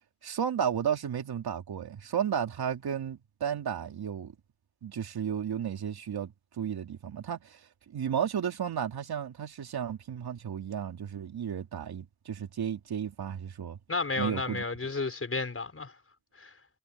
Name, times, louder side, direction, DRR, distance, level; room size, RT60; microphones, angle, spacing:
voice 1, 0.2-4.4 4.8-7.6 7.9-13.8 14.2-14.6, right 8 dB, 80° right, 3.1 m, -33 dB
voice 2, 13.9-15.9 16.4-16.5, left 3 dB, 35° left, 5.6 m, -32 dB
cardioid pair, 75°, 37 cm